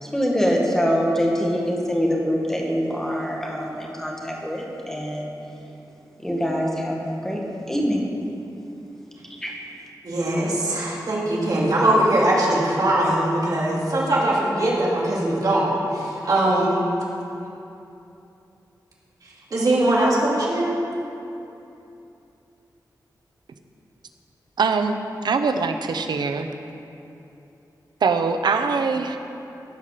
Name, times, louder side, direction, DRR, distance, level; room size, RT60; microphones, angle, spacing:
voice 1, 0.0-5.4 6.2-7.4 7.7-8.0 9.4-9.5, equal, 5° left, -1 dB, 1.8 m, -24 dB
voice 2, 10.0-16.8 19.5-20.7, right 1 dB, 60° right, -5 dB, 2.5 m, -21 dB
voice 3, 24.6-26.5 28.0-29.2, right 4 dB, 85° right, 7 dB, 0.7 m, -23 dB
15.5 x 5.7 x 6.7 m, 2.8 s
wide cardioid pair, 105°, 7 cm